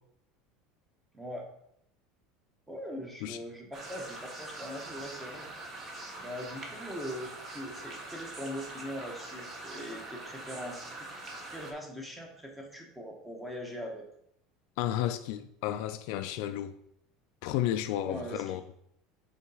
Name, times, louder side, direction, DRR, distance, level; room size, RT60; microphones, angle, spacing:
voice 1, 2.7-5.5 6.2-11.1 11.4-14.0 18.0-18.6, equal, 5° right, 1.1 m, -41 dB
sound 1, 3.7-11.7, right 2 dB, 30° right, 1.1 m, -43 dB
voice 2, 14.8-16.8 17.4-18.6, left 12 dB, 65° left, 0.4 m, -32 dB
5.4 x 4.1 x 4.8 m
cardioid pair, 155°, 0 cm